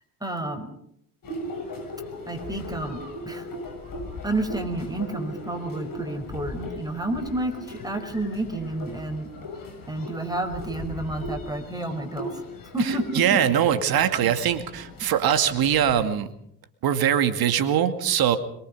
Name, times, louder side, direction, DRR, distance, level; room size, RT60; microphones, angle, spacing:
voice 1, 0.2-0.7 2.3-3.0 3.3-3.5 4.2-9.3 9.9-12.3 12.7-13.4, right 2 dB, 10° right, 6 dB, 5.3 m, -30 dB
sound 1, 1.2-15.9, left 1 dB, 45° left, 7.2 m, -38 dB
voice 2, 12.8-16.3 16.8-18.4, right 9 dB, 50° right, 9 dB, 2.4 m, -22 dB
24.5 x 23.0 x 5.4 m, 0.70 s
figure-of-eight pair, 55°, 45 cm